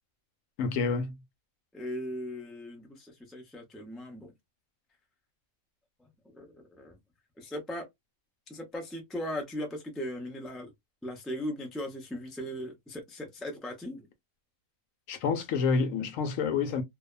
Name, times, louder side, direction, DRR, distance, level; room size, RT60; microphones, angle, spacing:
voice 1, 0.6-1.2 15.1-16.8, left 5 dB, 75° left, 0.9 m, -28 dB
voice 2, 1.7-4.3 6.0-7.0 7.4-7.8 8.5-10.7 11.0-14.1, equal, ahead, 0.3 m, -38 dB
2.6 x 2.2 x 2.3 m
omnidirectional pair, 1.5 m